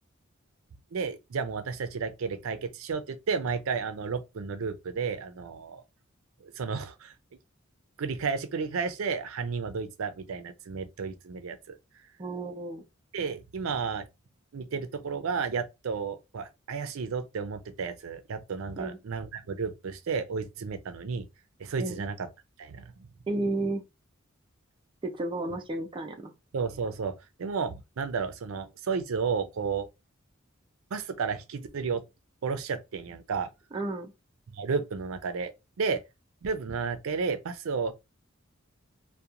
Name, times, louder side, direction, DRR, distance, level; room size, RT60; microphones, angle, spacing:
voice 1, 0.9-5.8 6.4-7.1 8.0-11.8 13.1-14.1 14.5-21.3 21.6-22.3 22.6-22.9 26.5-29.9 30.9-32.0 32.4-33.5 34.5-35.5 35.8-36.0 36.4-37.9, right 5 dB, 90° right, 0.5 m, -32 dB
voice 2, 12.2-12.8 18.8-19.0 21.8-22.0 23.3-23.8 25.0-26.3 33.7-34.1, right 2 dB, 25° right, 0.4 m, -32 dB
2.8 x 2.2 x 2.4 m
head